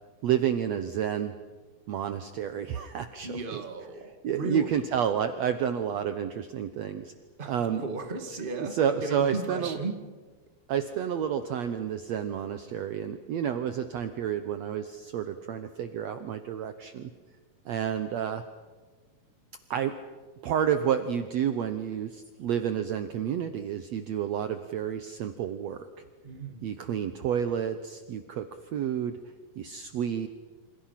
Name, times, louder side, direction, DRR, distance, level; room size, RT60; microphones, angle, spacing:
voice 1, 0.2-1.3 1.9-3.6 4.2-7.1 7.4-7.8 8.3-9.8 10.7-17.1 17.6-18.4 19.7-19.9 20.4-25.9 26.6-28.4 28.7-29.2 29.6-30.3, right 8 dB, 80° right, 9 dB, 1.5 m, -30 dB
voice 2, 3.2-4.7 7.4-10.0 26.2-26.6, right 3 dB, 20° right, 5 dB, 1.6 m, -35 dB
28.5 x 27.0 x 5.9 m, 1.4 s
omnidirectional pair, 4.4 m